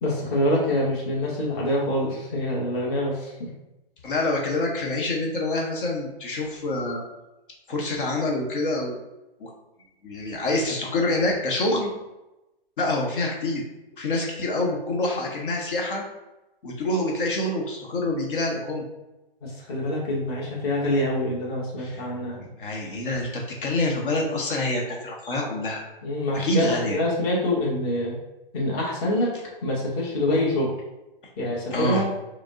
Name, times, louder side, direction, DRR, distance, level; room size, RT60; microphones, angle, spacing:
voice 1, 0.0-3.5 19.4-22.5 26.0-28.2 28.5-29.3 29.6-30.7 31.4-32.0, left 1 dB, 25° left, -4 dB, 0.9 m, -25 dB
voice 2, 4.0-7.0 7.7-9.0 9.4-9.5 10.0-11.9 12.8-13.6 14.0-16.0 16.6-18.8 21.8-22.0 22.6-25.8 26.3-27.0 31.7-32.0, left 2 dB, 60° left, 0 dB, 0.9 m, -26 dB
4.8 x 2.0 x 3.6 m, 0.98 s
hypercardioid pair, 150°, 30 cm